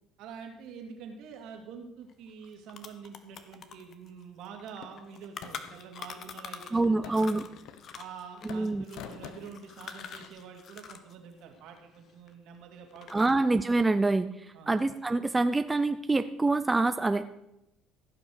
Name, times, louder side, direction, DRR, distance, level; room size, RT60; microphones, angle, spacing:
voice 1, 0.2-7.5 8.0-13.3 14.5-14.8, right 6 dB, 75° right, 3 dB, 2.5 m, -46 dB
sound 1, 2.1-2.2 2.4-6.8 7.1-11.1 11.4-12.6 12.9-13.5, left 7 dB, 50° left, 1.2 m, -45 dB
sound 2, 4.8-5.9 6.8-8.2 8.5-10.3, left 8 dB, 70° left, 1.0 m, -48 dB
voice 2, 6.7-7.4 8.4-8.8 13.1-14.3 14.7-17.3, right 2 dB, 15° right, 10 dB, 0.6 m, -26 dB
15.5 x 6.1 x 6.5 m, 0.86 s
supercardioid pair, 95°, 0 cm